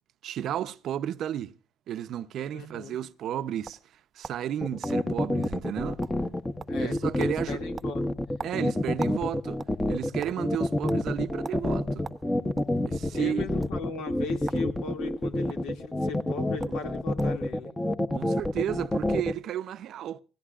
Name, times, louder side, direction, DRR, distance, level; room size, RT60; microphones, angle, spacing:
voice 1, 0.2-1.5 1.9-3.8 4.1-6.0 6.8-7.6 8.4-9.6 9.9-12.1 12.9-13.5 16.7-16.8 18.1-20.2, right 10 dB, 60° right, 0.7 m, -33 dB
voice 2, 2.5-3.0 6.7-8.0 13.1-17.7, left 5 dB, 80° left, 2.3 m, -38 dB
sound 1, 3.1-4.5 4.8-5.0 5.4-5.6 5.9-6.3 6.6-6.9 7.2-7.4 7.8-9.2 9.5-10.4 10.9-11.0 11.4-11.6 12.0-12.8 13.5-13.7 14.4-14.7 15.0-15.6 16.3-16.4 16.6-16.8 17.2-17.4, right 5 dB, 25° right, 0.8 m, -41 dB
sound 2, 4.6-19.3, left 1 dB, 10° left, 0.8 m, -28 dB
28.0 x 17.0 x 2.4 m
cardioid pair, 115°, 0 cm